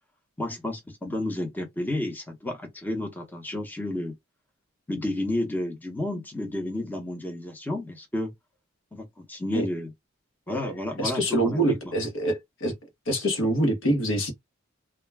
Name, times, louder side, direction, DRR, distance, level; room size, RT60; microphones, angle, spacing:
voice 1, 0.4-4.1 4.9-8.3 8.9-9.9 10.5-11.9, left 1 dB, 10° left, 0.8 m, -31 dB
voice 2, 11.0-12.7 13.1-14.3, right 1 dB, 70° left, 0.9 m, -25 dB
2.2 x 2.2 x 3.3 m
head